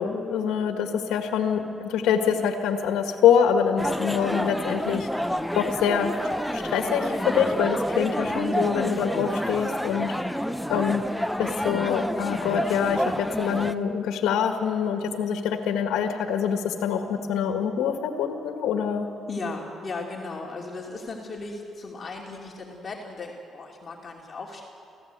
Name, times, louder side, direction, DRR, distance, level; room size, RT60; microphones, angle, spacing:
voice 1, 0.0-5.1 5.5-6.1 6.5-10.1 10.7-11.0 11.4-19.1, left 8 dB, 90° left, 5 dB, 1.6 m, -25 dB
sound 1, 3.8-13.8, equal, ahead, 0.8 m, -28 dB
voice 2, 19.3-24.6, left 3 dB, 40° left, -1 dB, 2.7 m, -36 dB
24.5 x 16.0 x 8.2 m, 2.8 s
cardioid pair, 90°, 0 cm